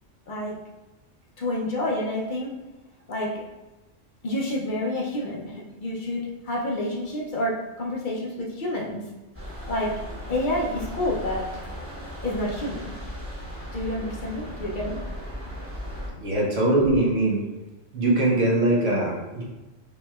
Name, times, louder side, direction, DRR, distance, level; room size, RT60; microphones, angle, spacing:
voice 1, 0.3-0.6 1.4-2.6 3.1-3.4 4.2-9.1 9.7-10.0 10.3-11.5 12.2-12.9 13.7-15.0, left 1 dB, 50° left, -2 dB, 0.7 m, -29 dB
sound 1, 9.3-16.1, equal, 15° right, 0.8 m, -36 dB
voice 2, 16.2-17.4 17.9-19.4, right 2 dB, 75° right, -4 dB, 1.4 m, -22 dB
5.1 x 2.9 x 2.3 m, 1.1 s
omnidirectional pair, 1.3 m